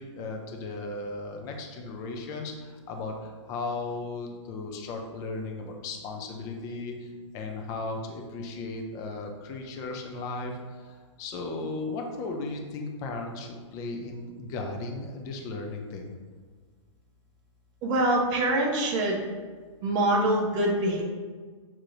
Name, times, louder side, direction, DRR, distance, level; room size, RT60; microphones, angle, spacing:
voice 1, 0.0-16.1, left 3 dB, 20° left, 2 dB, 0.4 m, -36 dB
voice 2, 17.8-19.2 19.8-21.0, right 1 dB, 25° right, -1 dB, 0.7 m, -24 dB
6.4 x 2.9 x 2.5 m, 1.5 s
hypercardioid pair, 150°, 16 cm